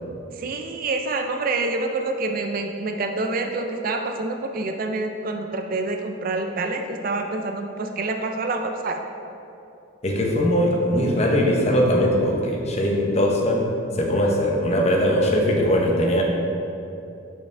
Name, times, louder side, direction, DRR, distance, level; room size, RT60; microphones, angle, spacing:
voice 1, 0.4-9.0, right 3 dB, 40° right, 5 dB, 0.3 m, -27 dB
voice 2, 10.0-13.7 13.9-16.2, equal, 30° left, -1 dB, 0.7 m, -20 dB
6.7 x 5.6 x 3.3 m, 2.8 s
head